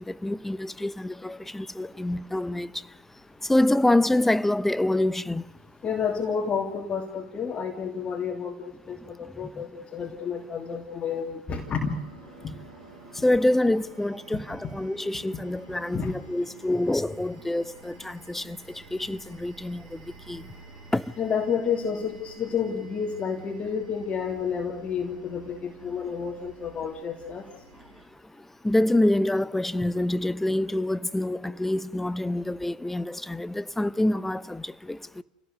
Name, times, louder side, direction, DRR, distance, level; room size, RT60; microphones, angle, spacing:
voice 1, 0.1-2.7 3.5-5.4 13.2-18.6 18.9-19.8 20.3-20.4 20.9-21.0 28.6-35.2, left 1 dB, 5° left, 0.8 m, -26 dB
voice 2, 5.8-12.0 12.4-12.5 15.9-16.1 21.2-27.5, left 6 dB, 30° left, 2.9 m, -30 dB
sound 1, 11.5-28.1, right 3 dB, 75° right, 4.5 m, -50 dB
29.5 x 17.5 x 6.6 m
hypercardioid pair, 85°, 4 cm